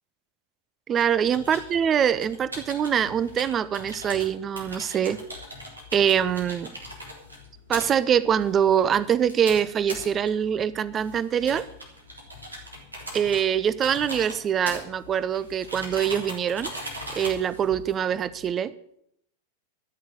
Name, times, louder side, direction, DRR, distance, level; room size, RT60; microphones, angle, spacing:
voice 1, 0.9-5.2 5.9-6.7 7.7-11.7 13.1-16.7 17.1-18.7, right 8 dB, 25° right, 17 dB, 0.7 m, -24 dB
sound 1, 0.9-18.5, equal, 80° right, 3.4 m, -40 dB
13.0 x 6.4 x 9.4 m, 0.72 s
figure-of-eight pair, 90°, 0 cm